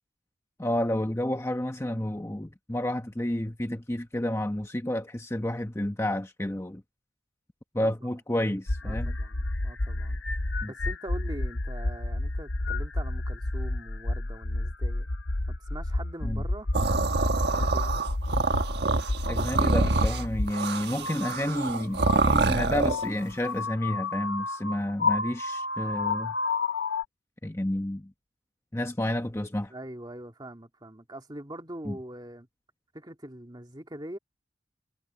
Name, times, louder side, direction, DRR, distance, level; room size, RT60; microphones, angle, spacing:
voice 1, 0.6-6.8 7.7-9.1 10.6-10.7 16.2-16.4 19.3-26.4 27.4-28.1 28.7-29.7 31.9-32.0, left 1 dB, 15° left, 0.9 m, -30 dB
sound 1, 8.7-20.5 21.0-27.0, left 2 dB, 75° left, 1.1 m, -30 dB
voice 2, 8.8-10.2 10.7-15.1 15.5-16.7 17.3-18.1 29.7-32.5 32.9-34.2, right 1 dB, 20° right, 2.2 m, -43 dB
sound 2, 16.7-23.1, right 3 dB, 60° right, 1.4 m, -26 dB
head